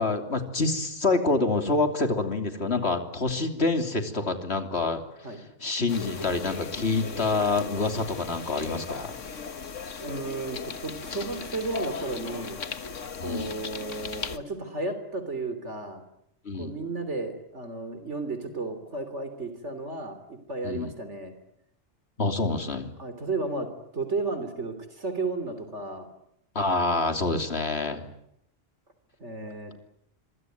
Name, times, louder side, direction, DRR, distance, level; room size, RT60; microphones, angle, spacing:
voice 1, 0.0-5.0 5.6-9.2 13.2-13.5 16.4-16.8 20.6-20.9 22.2-22.9 26.5-28.0, left 3 dB, 60° left, 6 dB, 3.3 m, -27 dB
sound 1, 5.9-14.4, left 5 dB, 85° left, 1.8 m, -37 dB
voice 2, 10.0-12.6 13.2-16.0 16.6-21.3 23.0-26.1 29.2-29.7, right 3 dB, 70° right, 10 dB, 3.6 m, -33 dB
26.0 x 23.5 x 9.4 m, 0.76 s
omnidirectional pair, 1.2 m